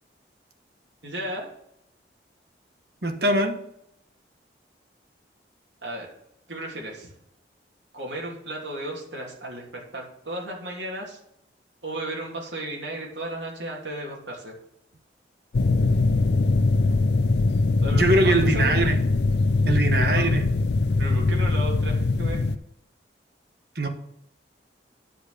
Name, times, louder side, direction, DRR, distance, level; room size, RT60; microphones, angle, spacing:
voice 1, 1.0-1.5 5.8-6.1 6.5-7.1 7.9-11.2 11.8-14.5 17.8-18.9 20.0-20.3 21.0-22.4, right 1 dB, 90° right, -1 dB, 3.0 m, -34 dB
voice 2, 3.0-3.6 17.9-19.0 19.6-20.4 23.8-23.9, right 2 dB, 60° right, 6 dB, 1.3 m, -22 dB
sound 1, 15.5-22.6, left 3 dB, 70° left, 0.5 m, -22 dB
10.0 x 5.2 x 6.6 m, 0.77 s
head